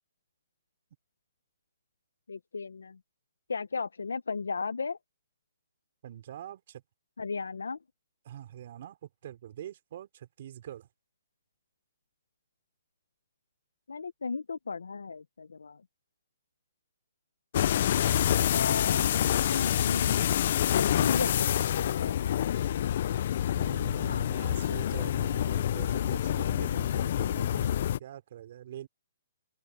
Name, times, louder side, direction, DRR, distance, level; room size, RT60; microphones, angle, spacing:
voice 1, 2.3-3.0 3.5-5.0 7.2-7.8 13.9-15.8 18.5-20.2 20.7-23.0 24.1-24.2, left 4 dB, 90° left, 0.7 m, -36 dB
voice 2, 6.0-6.8 8.2-10.9 23.5-28.9, right 11 dB, 55° right, 3.8 m, -44 dB
sound 1, 17.5-28.0, left 10 dB, 55° left, 0.4 m, -27 dB
hypercardioid pair, 145°, 0 cm